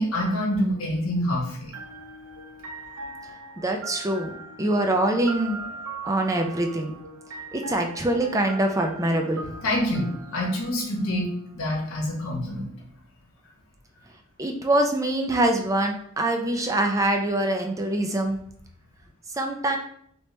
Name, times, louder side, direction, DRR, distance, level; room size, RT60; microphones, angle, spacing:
voice 1, 0.0-1.7 9.6-11.3 11.5-12.7, equal, 65° left, -2 dB, 1.0 m, -26 dB
sound 1, 1.7-11.5, right 3 dB, 80° right, 0.6 m, -40 dB
voice 2, 3.2-4.3 4.6-5.6 6.0-6.9 7.5-9.5 14.4-18.4 19.3-19.8, right 1 dB, 15° right, 3 dB, 0.4 m, -24 dB
2.9 x 2.8 x 3.2 m, 0.66 s
head